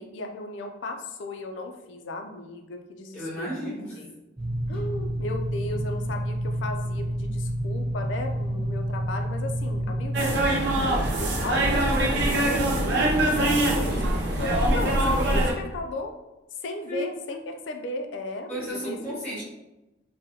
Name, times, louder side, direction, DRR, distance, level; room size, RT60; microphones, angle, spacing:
voice 1, 0.0-3.5 4.0-4.1 4.7-13.1 13.4-13.9 14.2-16.1 16.6-19.0, left 2 dB, 70° left, 4 dB, 0.3 m, -35 dB
voice 2, 3.1-4.0 13.5-14.1 16.9-17.4 18.5-19.4, equal, 10° left, -6 dB, 0.7 m, -34 dB
sound 1, 4.4-10.3, equal, 30° right, 1.0 m, -29 dB
sound 2, 10.1-15.5, right 1 dB, 60° right, 0.6 m, -23 dB
3.7 x 2.1 x 2.7 m, 0.99 s
head